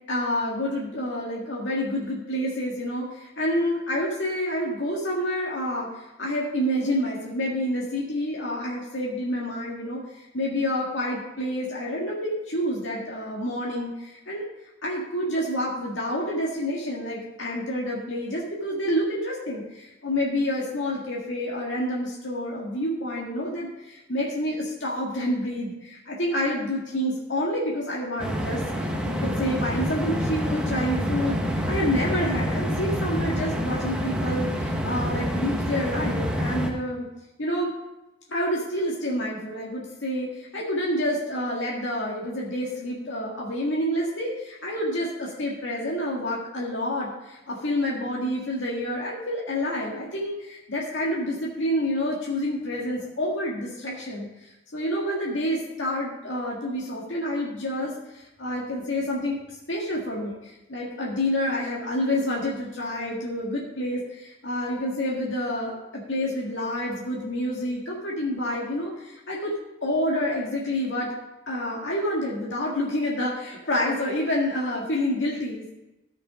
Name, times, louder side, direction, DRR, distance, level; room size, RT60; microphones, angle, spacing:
voice 1, 0.1-14.4 14.8-37.0 37.4-37.7 38.3-69.5 69.8-71.1 71.5-75.7, left 1 dB, 75° left, -4 dB, 1.8 m, -28 dB
sound 1, 28.2-36.7, equal, 5° right, 0.9 m, -27 dB
13.5 x 5.8 x 5.0 m, 0.96 s
head